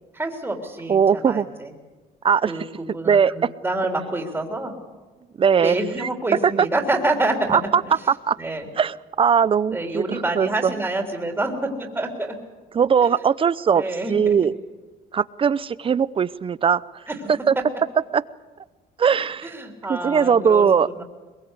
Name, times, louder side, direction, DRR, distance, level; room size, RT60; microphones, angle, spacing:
voice 1, 0.1-1.7 2.5-4.8 5.6-7.6 7.8-8.0 8.4-8.7 9.7-12.4 13.0-13.2 13.7-14.4 17.1-17.2 19.4-20.7 20.9-21.0, right 2 dB, 10° right, 2 dB, 3.5 m, -27 dB
voice 2, 0.9-1.5 2.2-2.5 3.0-3.3 5.4-6.1 6.4-6.7 7.5-7.8 8.3-8.4 8.8-10.7 12.7-13.8 14.1-14.5 15.1-16.8 17.3-17.5 18.1-18.2 19.0-19.5 19.9-20.9, right 7 dB, 30° right, 18 dB, 0.7 m, -19 dB
22.0 x 22.0 x 8.2 m, 1.3 s
cardioid pair, 110°, 17 cm